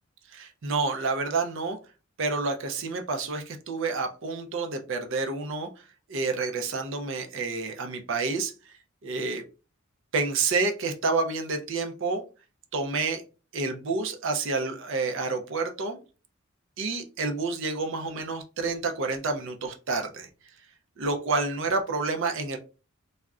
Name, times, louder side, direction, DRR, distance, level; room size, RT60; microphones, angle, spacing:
voice 1, 0.3-1.8 2.2-5.7 6.1-8.5 9.0-9.4 10.1-12.2 12.7-13.2 13.5-16.0 16.8-20.3 21.0-22.6, right 3 dB, 60° right, 5 dB, 0.5 m, -29 dB
2.4 x 2.1 x 3.5 m, 0.33 s
head